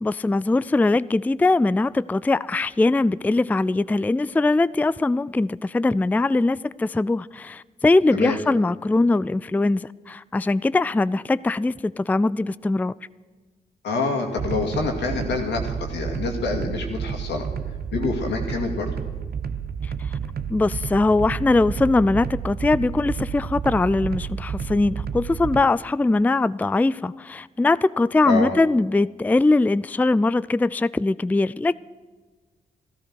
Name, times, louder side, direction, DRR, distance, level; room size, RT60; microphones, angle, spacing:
voice 1, 0.0-12.9 20.5-31.8, left 2 dB, 10° left, 0.3 m, -21 dB
voice 2, 13.8-17.5 17.9-18.9 28.2-28.5, left 3 dB, 85° left, 2.2 m, -26 dB
sound 1, 14.4-25.6, right 7 dB, 60° right, 0.8 m, -31 dB
13.5 x 13.5 x 6.4 m
supercardioid pair, 45°, 18 cm